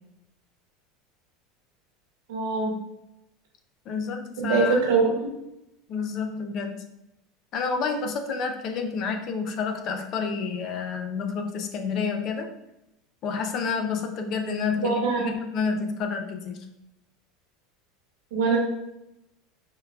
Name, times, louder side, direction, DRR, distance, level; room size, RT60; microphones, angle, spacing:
voice 1, 2.3-2.7 4.4-5.3 14.8-15.3 18.3-18.6, right 4 dB, 90° right, 0 dB, 0.9 m, -23 dB
voice 2, 3.9-4.8 5.9-6.8 7.5-12.5 13.2-16.6, left 5 dB, 35° left, 6 dB, 0.3 m, -29 dB
4.4 x 2.3 x 2.3 m, 0.87 s
supercardioid pair, 180°, 0 cm